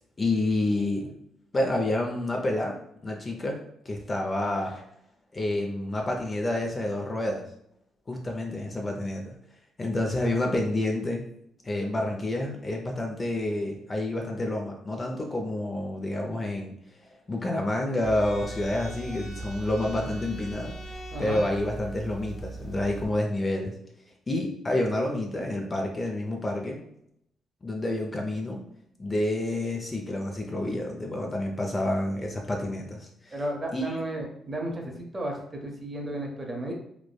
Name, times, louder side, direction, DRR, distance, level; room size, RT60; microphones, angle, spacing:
voice 1, 0.2-1.1 1.5-2.8 3.0-4.8 5.3-7.4 8.1-9.4 9.8-11.2 11.6-16.7 17.3-23.7 24.3-26.8 27.6-28.6 29.0-33.4 33.7-33.9, left 1 dB, 30° left, 1 dB, 0.4 m, -29 dB
sound 1, 18.0-23.1, right 2 dB, 60° left, 0.7 m, -39 dB
voice 2, 21.1-21.4 33.3-36.7, right 1 dB, 25° right, 1 dB, 0.6 m, -33 dB
3.1 x 2.0 x 2.2 m, 0.74 s
cardioid pair, 90°, 0 cm